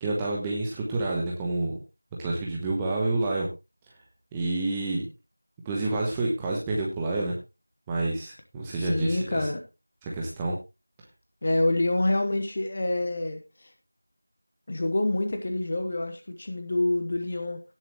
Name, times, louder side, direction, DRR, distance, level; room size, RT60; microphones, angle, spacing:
voice 1, 0.0-1.8 2.2-3.5 4.3-5.1 5.6-7.3 7.9-9.4 10.1-10.5, right 2 dB, 5° right, -3 dB, 1.0 m, -28 dB
voice 2, 8.7-9.6 11.4-13.7 14.7-17.6, left 2 dB, 25° left, 6 dB, 1.2 m, -27 dB
18.0 x 7.3 x 3.1 m, 0.26 s
figure-of-eight pair, 175°, 0 cm